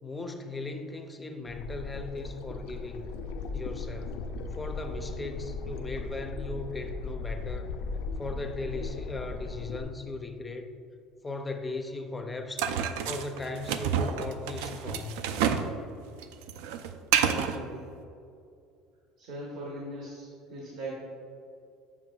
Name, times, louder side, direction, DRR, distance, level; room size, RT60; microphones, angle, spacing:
voice 1, 0.0-3.1 3.5-4.3 4.5-7.7 8.2-10.7 11.2-12.7 13.0-15.3, left 3 dB, 10° left, 6 dB, 0.4 m, -38 dB
sound 1, 1.5-9.8, left 3 dB, 75° left, 0.4 m, -37 dB
sound 2, 12.6-15.7 16.0-17.6, right 8 dB, 90° right, 0.3 m, -29 dB
voice 2, 17.1-17.9 19.2-20.9, right 1 dB, 65° right, -4 dB, 1.1 m, -40 dB
7.3 x 5.8 x 2.3 m, 2.5 s
cardioid pair, 155°, 0 cm